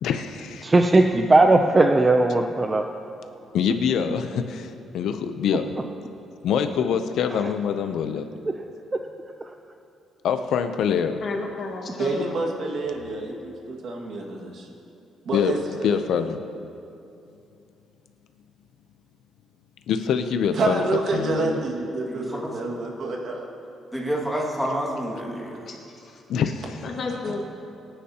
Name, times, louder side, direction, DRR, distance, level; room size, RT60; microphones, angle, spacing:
voice 1, 0.0-0.6 3.5-5.8 6.4-8.3 10.2-11.2 15.3-15.5 15.8-16.4 19.9-20.8 21.1-21.6 26.3-26.6, left 7 dB, 70° left, 8 dB, 0.6 m, -24 dB
voice 2, 0.6-2.9 7.3-7.5 8.9-9.0 9.4-9.5, right 2 dB, 20° right, 5 dB, 0.4 m, -18 dB
voice 3, 11.2-12.3 25.7-25.8 26.8-27.4, left 3 dB, 50° left, 0 dB, 1.7 m, -31 dB
voice 4, 12.0-14.7 15.3-16.0 20.5-23.5 27.2-27.3, right 3 dB, 55° right, 0 dB, 1.8 m, -28 dB
voice 5, 22.1-22.5 23.9-25.7, equal, ahead, -3 dB, 2.0 m, -29 dB
23.5 x 9.9 x 2.9 m, 2.7 s
cardioid pair, 140°, 0 cm